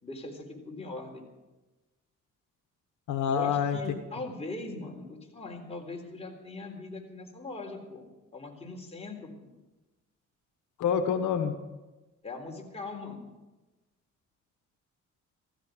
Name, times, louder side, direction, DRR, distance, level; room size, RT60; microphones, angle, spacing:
voice 1, 0.0-1.3 3.3-9.5 12.2-13.3, left 2 dB, 20° left, 0 dB, 3.8 m, -40 dB
voice 2, 3.1-3.8 10.8-11.5, left 7 dB, 75° left, 7 dB, 1.3 m, -27 dB
15.5 x 15.5 x 5.1 m, 1.1 s
cardioid pair, 90°, 30 cm